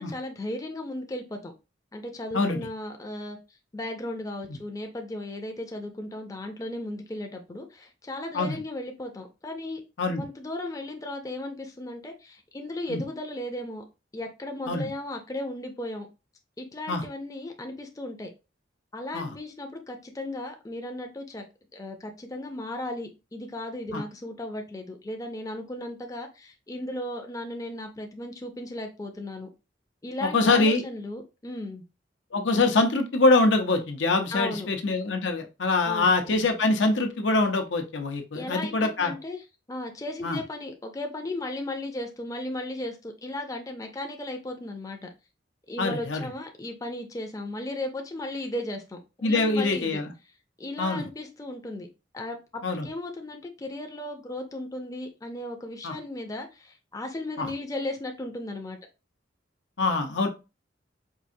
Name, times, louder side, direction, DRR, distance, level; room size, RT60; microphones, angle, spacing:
voice 1, 0.0-1.5 1.9-3.4 3.7-9.8 10.2-13.8 14.1-16.1 16.6-18.3 18.9-21.4 21.7-29.5 30.0-31.8 34.3-34.7 35.8-36.4 38.3-39.4 39.7-45.1 45.7-50.0 50.6-51.9 52.1-58.8, left 1 dB, 20° left, 0.5 m, -36 dB
voice 2, 30.2-30.8 32.3-39.1 40.2-40.4 45.8-46.3 49.2-50.1 50.8-51.1 52.6-52.9 55.8-56.0 57.4-57.5 59.8-60.3, left 3 dB, 85° left, 0.7 m, -24 dB
4.6 x 2.5 x 2.6 m
head